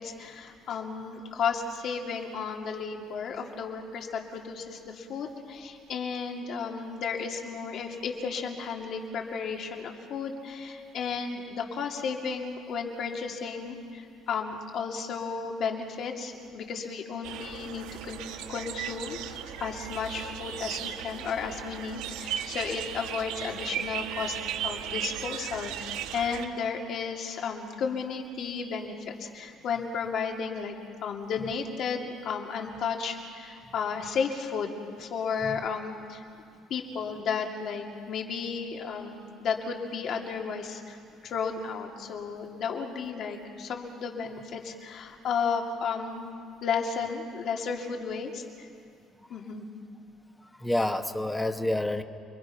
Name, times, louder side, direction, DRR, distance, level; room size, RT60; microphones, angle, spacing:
voice 1, 0.0-24.4 24.6-30.7 31.0-36.2 36.7-46.3 46.6-48.7 49.3-49.7, left 5 dB, 50° left, 2 dB, 2.5 m, -33 dB
sound 1, 17.2-26.5, right 10 dB, 80° right, 1.2 m, -36 dB
voice 2, 50.6-52.0, left 1 dB, 5° left, 7 dB, 1.0 m, -28 dB
29.0 x 22.5 x 5.8 m, 2.3 s
cardioid pair, 150°, 0 cm